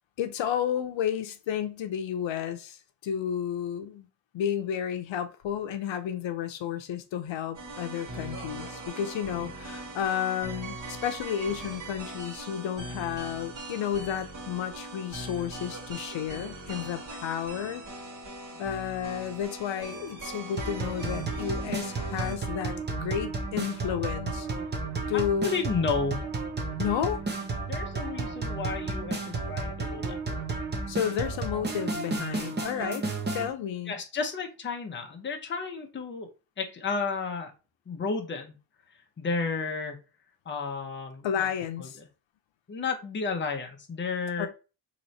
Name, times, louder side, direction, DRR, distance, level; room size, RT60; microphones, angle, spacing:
voice 1, 0.2-4.1 4.3-17.8 18.6-24.5 25.1-25.5 26.8-27.2 30.9-33.1 33.3-34.0 41.2-42.0 44.4-44.5, left 9 dB, 80° left, 0.7 m, -32 dB
sound 1, 7.5-22.4, right 2 dB, 40° right, 1.6 m, -41 dB
sound 2, 20.6-33.5, right 3 dB, 25° right, 0.7 m, -32 dB
voice 2, 25.1-26.2 27.7-30.2 33.9-36.3 36.6-37.5 37.9-38.6 39.2-40.0 40.5-41.5 41.8-42.0 42.7-44.5, left 4 dB, 25° left, 0.7 m, -32 dB
3.1 x 3.0 x 4.0 m
wide cardioid pair, 165°, 45 cm